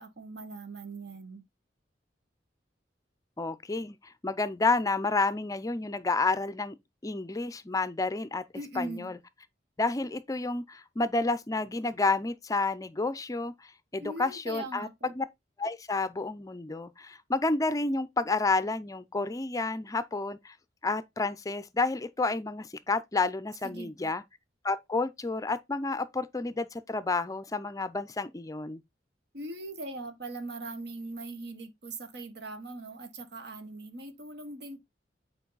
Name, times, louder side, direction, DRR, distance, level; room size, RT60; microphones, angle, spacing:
voice 1, 0.0-1.4 8.5-9.1 14.0-15.1 23.6-23.9 29.3-34.8, right 2 dB, 65° right, 1.4 m, -40 dB
voice 2, 3.4-6.8 7.0-8.4 8.8-9.1 9.8-14.9 15.1-15.2 15.6-20.5 20.8-24.2 24.6-28.8, left 3 dB, 20° left, 0.4 m, -30 dB
8.4 x 4.6 x 3.9 m
head